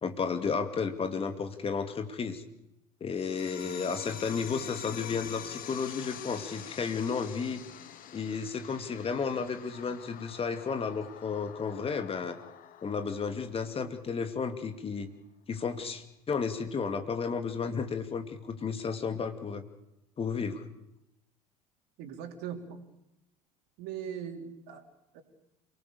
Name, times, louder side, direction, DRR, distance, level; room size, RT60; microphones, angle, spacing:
voice 1, 0.0-2.4 3.0-7.6 8.1-12.4 12.8-15.1 15.5-19.6 20.2-20.6, left 5 dB, 30° left, 8 dB, 2.5 m, -33 dB
sound 1, 3.1-14.1, left 9 dB, 45° left, 2.3 m, -46 dB
voice 2, 22.0-22.8 23.8-24.8 25.1-25.2, right 8 dB, 55° right, 5 dB, 3.7 m, -40 dB
29.0 x 19.5 x 7.0 m, 0.86 s
figure-of-eight pair, 65°, 20 cm